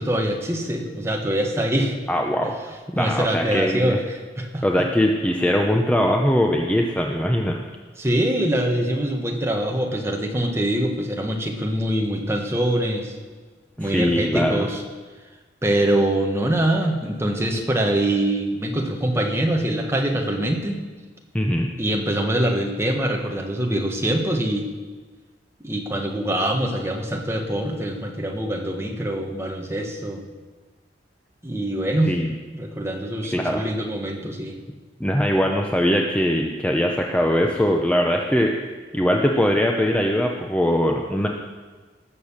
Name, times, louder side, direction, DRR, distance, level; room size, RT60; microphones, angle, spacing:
voice 1, 0.0-1.9 2.9-4.6 8.0-13.1 13.8-14.8 15.6-20.8 21.8-24.7 25.6-30.2 31.4-32.1 32.5-34.6, right 1 dB, 15° right, 1 dB, 1.6 m, -24 dB
voice 2, 2.1-2.6 2.9-4.0 4.6-7.6 13.8-14.7 21.3-21.7 32.1-32.3 33.3-33.6 35.0-38.5 38.9-41.3, equal, 5° left, 1 dB, 0.7 m, -21 dB
18.5 x 6.9 x 7.3 m, 1.4 s
head